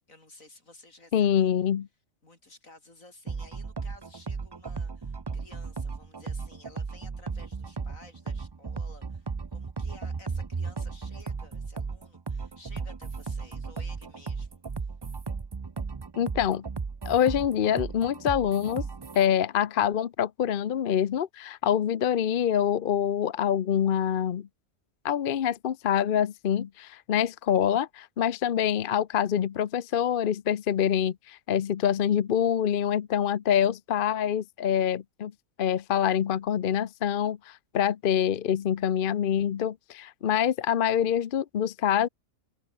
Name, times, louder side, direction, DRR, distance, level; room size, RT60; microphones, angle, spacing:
voice 1, 0.1-1.5 2.2-14.9, left 2 dB, 70° left, 5.9 m, -54 dB
voice 2, 1.1-1.9 16.2-16.6 17.0-18.9 19.1-24.5 25.0-35.3 35.6-42.1, left 9 dB, 50° left, 0.7 m, -25 dB
sound 1, 3.3-19.3, right 4 dB, 35° right, 0.4 m, -35 dB
open air
omnidirectional pair, 1.5 m